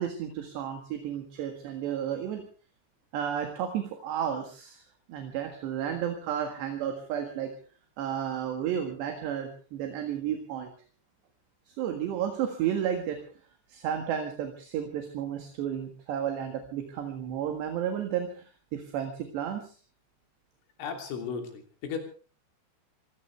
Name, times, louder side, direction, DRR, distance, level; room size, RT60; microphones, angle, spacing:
voice 1, 0.0-2.4 3.1-4.8 5.1-7.5 8.0-10.7 11.7-13.2 13.7-19.8, right 9 dB, 65° right, 5 dB, 3.7 m, -32 dB
voice 2, 20.8-22.0, left 6 dB, 85° left, 4 dB, 5.6 m, -35 dB
25.5 x 17.0 x 3.4 m, 0.38 s
omnidirectional pair, 5.6 m